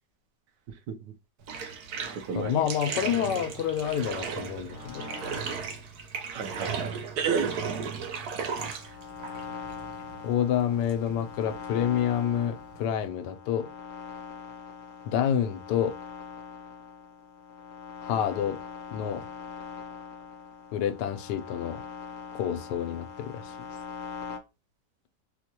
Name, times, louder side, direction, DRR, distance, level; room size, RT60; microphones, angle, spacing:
voice 1, 0.7-1.1 2.1-2.7 6.3-7.6, right 6 dB, 85° right, 1.4 m, -32 dB
Bathtub (filling or washing), 1.4-13.1, right 6 dB, 70° right, 1.2 m, -36 dB
voice 2, 2.3-5.1 10.2-13.7 15.1-15.9 18.0-18.6 18.9-19.3 20.7-21.8 22.3-23.5, left 9 dB, 85° left, 1.2 m, -28 dB
sound 1, 4.7-5.6 8.6-24.4, left 6 dB, 55° left, 0.8 m, -42 dB
4.5 x 2.2 x 2.8 m
omnidirectional pair, 1.8 m